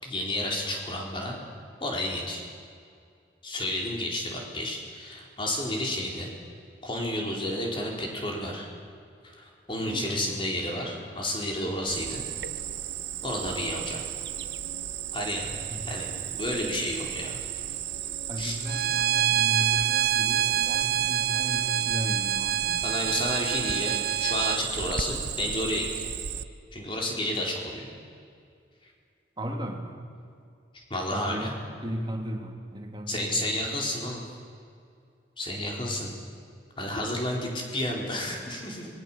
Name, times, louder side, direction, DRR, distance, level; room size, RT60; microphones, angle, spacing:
voice 1, 0.0-1.4 1.8-2.4 3.4-6.3 6.8-8.7 9.2-12.2 13.2-14.0 15.1-15.5 15.9-17.4 18.4-18.5 22.8-25.9 26.7-27.9 28.8-28.9 30.7-31.5 33.1-34.2 35.4-36.1 36.8-39.0, left 1 dB, 30° left, 0 dB, 4.4 m, -31 dB
voice 2, 9.8-10.4 15.7-15.8 18.3-22.9 29.4-30.0 31.1-33.5 37.4-37.5 38.3-38.5 38.8-38.9, equal, 25° right, 2 dB, 2.7 m, -35 dB
Cricket, 11.9-26.4, right 10 dB, 70° right, 0.8 m, -35 dB
Bowed string instrument, 18.7-24.6, right 10 dB, 55° right, 0.5 m, -26 dB
26.5 x 20.5 x 7.5 m, 2.3 s
head